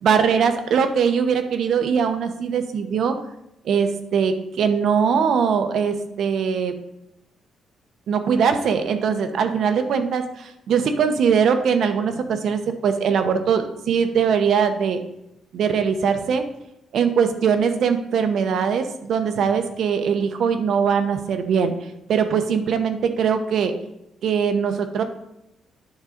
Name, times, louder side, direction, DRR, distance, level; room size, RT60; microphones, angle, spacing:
voice 1, 0.0-3.2 3.6-6.7 8.1-15.0 15.5-16.4 16.9-21.7 22.1-23.7 24.2-25.0, right 6 dB, 65° right, 8 dB, 0.8 m, -21 dB
9.5 x 3.7 x 5.1 m, 0.86 s
cardioid pair, 120°, 0 cm